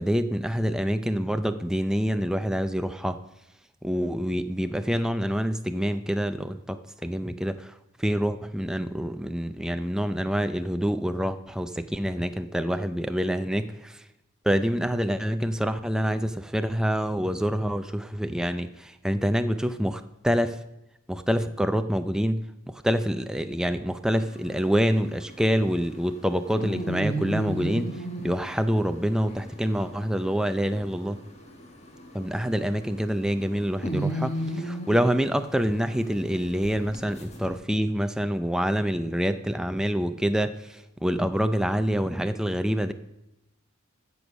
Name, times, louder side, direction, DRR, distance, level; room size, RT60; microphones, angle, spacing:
voice 1, 0.0-3.2 3.8-7.6 8.0-13.9 14.5-20.6 21.1-22.4 22.8-27.9 28.2-31.2 32.1-40.5 41.0-42.9, equal, 5° right, 9 dB, 0.5 m, -26 dB
sound 1, 24.1-37.6, right 1 dB, 30° left, 1.7 m, -36 dB
14.5 x 7.1 x 6.2 m, 0.87 s
head